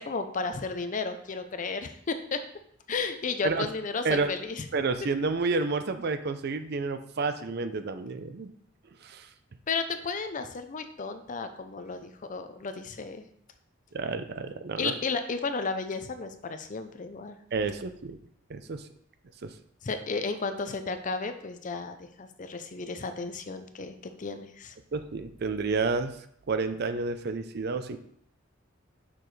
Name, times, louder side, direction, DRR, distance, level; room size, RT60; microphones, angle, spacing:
voice 1, 0.0-2.4 2.9-4.6 9.7-13.2 14.8-17.4 19.8-24.7, left 4 dB, 40° left, 9 dB, 0.5 m, -33 dB
voice 2, 4.7-8.5 9.0-9.3 13.9-14.9 17.5-18.2 18.5-18.9 19.4-19.5 24.9-26.1 26.5-28.0, right 4 dB, 55° right, 10 dB, 0.5 m, -30 dB
6.9 x 6.0 x 3.2 m, 0.67 s
head